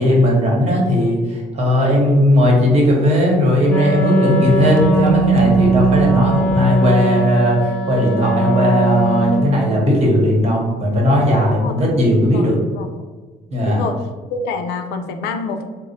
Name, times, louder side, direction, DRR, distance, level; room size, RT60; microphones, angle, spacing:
voice 1, 0.0-12.6 13.5-13.8, equal, 40° right, -2 dB, 1.1 m, -16 dB
Wind instrument woodwind instrument, 3.7-9.8, right 2 dB, 5° left, 1.1 m, -19 dB
sound 1, 4.5-7.0, right 1 dB, 75° right, 0.4 m, -30 dB
voice 2, 11.6-12.9 13.6-15.6, left 4 dB, 75° left, 6 dB, 0.4 m, -27 dB
2.7 x 2.0 x 4.0 m, 1.3 s
cardioid pair, 110°, 17 cm